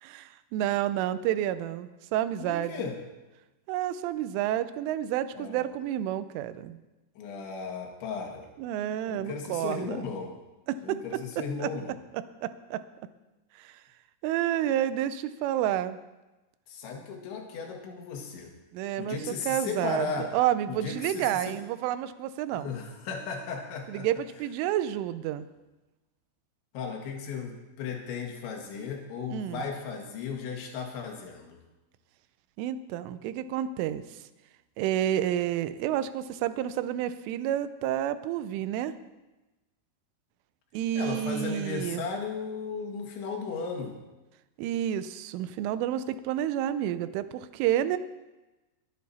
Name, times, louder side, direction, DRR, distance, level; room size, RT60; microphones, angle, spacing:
voice 1, 0.0-2.8 3.7-6.8 8.6-10.0 10.7-11.0 11.6-11.7 12.4-12.8 13.6-13.8 14.2-16.0 18.7-19.2 19.5-22.7 23.9-25.5 29.3-29.6 32.6-34.0 34.8-38.9 40.7-42.1 44.6-48.0, right 11 dB, 90° right, 13 dB, 3.2 m, -30 dB
voice 2, 2.4-3.0 5.3-5.7 7.2-8.5 9.1-10.3 10.8-11.9 16.7-18.5 19.0-20.3 20.7-21.6 22.5-24.2 26.7-31.6 41.0-44.0, left 5 dB, 75° left, 2 dB, 4.0 m, -36 dB
22.0 x 9.7 x 4.2 m, 1.1 s
omnidirectional pair, 5.5 m